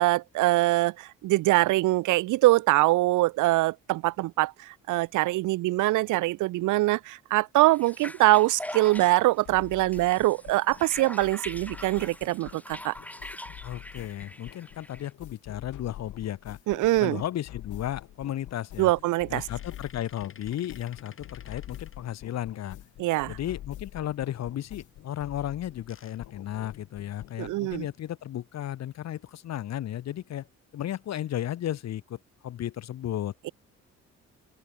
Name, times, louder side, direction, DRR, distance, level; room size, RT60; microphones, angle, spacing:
voice 1, 0.0-12.9 16.7-17.2 18.8-19.4 23.0-23.4 27.4-27.9, right 18 dB, 80° right, 0.6 m, -23 dB
sound 1, 7.7-15.1, left 1 dB, 5° left, 1.6 m, -43 dB
sound 2, 9.0-27.9, left 13 dB, 80° left, 2.6 m, -46 dB
voice 2, 13.6-16.6 17.0-18.9 19.3-22.8 23.3-30.5 30.7-32.2 32.4-33.3, left 11 dB, 60° left, 1.0 m, -34 dB
sound 3, 19.2-22.7 25.4-27.3 27.9-28.0 28.2-28.4 29.9-30.2 30.8-31.4, left 6 dB, 45° left, 6.3 m, -55 dB
open air
cardioid pair, 90°, 30 cm